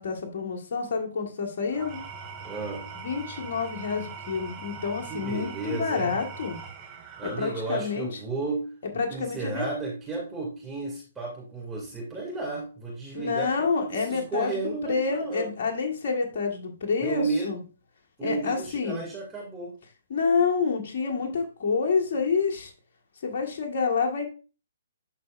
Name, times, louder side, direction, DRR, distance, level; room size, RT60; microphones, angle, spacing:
voice 1, 0.0-2.0 3.0-6.6 7.4-8.1 8.9-9.6 13.1-17.6 18.2-19.0 20.1-22.7 23.2-24.3, left 5 dB, 55° left, 2 dB, 1.6 m, -28 dB
Engine / Tools, 1.7-8.1, right 5 dB, 25° right, 2.1 m, -41 dB
voice 2, 2.4-2.8 5.0-6.2 7.2-15.5 17.0-17.5 18.2-19.7, right 3 dB, 10° right, -4 dB, 2.4 m, -33 dB
11.5 x 4.3 x 2.5 m, 0.35 s
hypercardioid pair, 140°, 0 cm